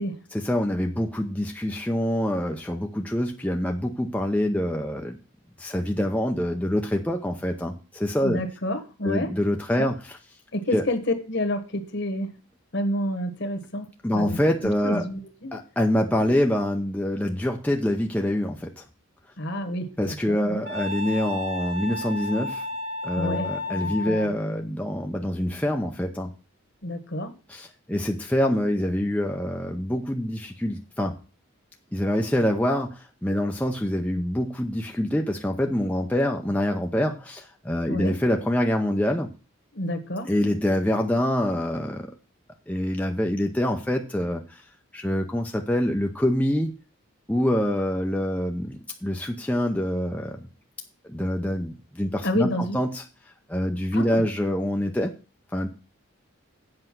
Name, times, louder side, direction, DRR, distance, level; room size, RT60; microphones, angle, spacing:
voice 1, 0.3-5.2 5.6-8.4 9.0-9.9 10.7-10.8 14.0-15.0 15.5-18.8 20.0-22.7 23.0-26.3 27.5-31.1 31.9-39.3 40.3-42.1 42.7-44.6 44.9-46.7 47.3-50.5 51.1-53.0 53.5-55.1 55.5-55.7, left 1 dB, 5° left, 2 dB, 0.6 m, -25 dB
voice 2, 8.2-9.3 9.8-9.9 10.5-12.3 12.7-14.4 14.8-15.6 19.4-20.6 23.2-23.5 23.7-24.3 26.8-27.3 37.9-38.1 39.7-40.3 52.2-52.8 53.9-54.2, left 1 dB, 55° left, 7 dB, 1.4 m, -29 dB
Wind instrument woodwind instrument, 20.6-24.3, left 2 dB, 75° right, 2.2 m, -32 dB
7.9 x 5.4 x 7.5 m, 0.35 s
head